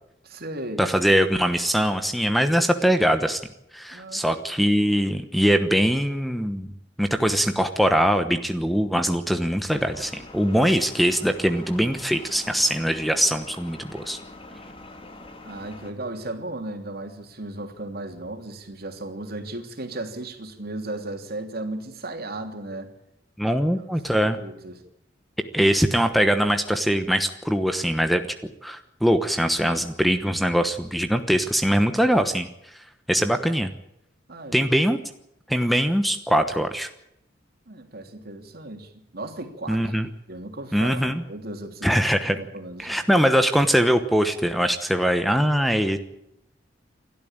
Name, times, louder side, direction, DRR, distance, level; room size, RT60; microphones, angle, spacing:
voice 1, 0.2-0.9 3.9-4.4 15.4-22.9 23.9-24.8 34.3-34.6 37.7-39.9 40.3-42.0 42.4-43.0, right 2 dB, 55° right, 5 dB, 3.1 m, -36 dB
voice 2, 0.8-3.4 3.7-6.7 7.0-14.2 23.4-24.4 25.5-28.2 28.6-32.5 33.1-33.7 34.5-35.0 35.5-36.9 39.7-40.1 40.7-41.2 41.8-42.4 42.8-46.0, equal, ahead, 8 dB, 1.1 m, -22 dB
sound 1, 9.7-15.9, left 2 dB, 30° left, 2.7 m, -44 dB
28.5 x 12.5 x 8.8 m, 0.83 s
head